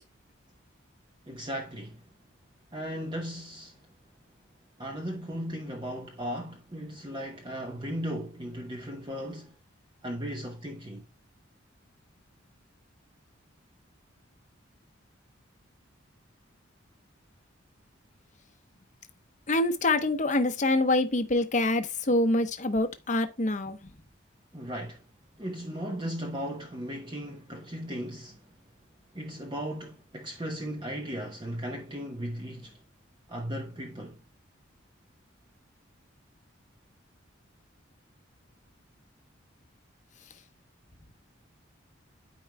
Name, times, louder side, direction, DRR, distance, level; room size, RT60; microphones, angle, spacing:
voice 1, 1.3-2.0 2.7-3.8 4.8-9.5 10.0-11.1 24.5-25.0 25.4-28.4 29.1-32.8 33.3-34.2, equal, 25° right, 0.8 m, -36 dB
voice 2, 19.5-23.9, left 2 dB, 35° left, 0.8 m, -26 dB
12.5 x 4.7 x 2.2 m
head